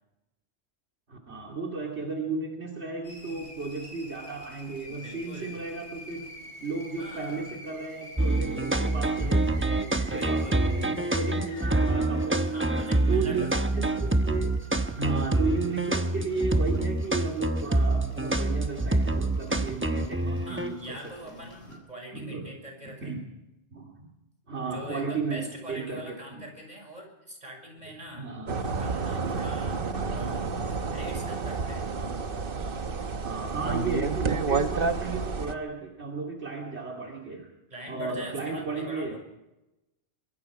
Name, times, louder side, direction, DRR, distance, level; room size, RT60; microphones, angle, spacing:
voice 1, 1.1-6.3 6.6-12.6 13.1-14.5 15.0-21.4 21.7-21.8 22.1-22.5 22.8-23.2 23.7-24.1 24.5-26.1 27.8-28.6 32.0-32.2 32.6-32.8 33.2-37.5 37.9-39.2, right 4 dB, 75° right, -1 dB, 2.9 m, -34 dB
sound 1, 3.0-21.8, left 1 dB, 70° left, 4.2 m, -48 dB
voice 2, 4.9-5.6 7.0-7.5 10.1-10.7 12.5-13.5 20.4-23.2 24.6-29.9 30.1-31.9 37.7-39.2, equal, 40° right, 2 dB, 6.1 m, -43 dB
sound 2, 8.2-20.7, right 2 dB, 10° right, 0.9 m, -26 dB
sound 3, 28.5-35.5, right 4 dB, 55° right, 1.2 m, -30 dB
24.0 x 22.5 x 4.9 m, 0.97 s
omnidirectional pair, 1.1 m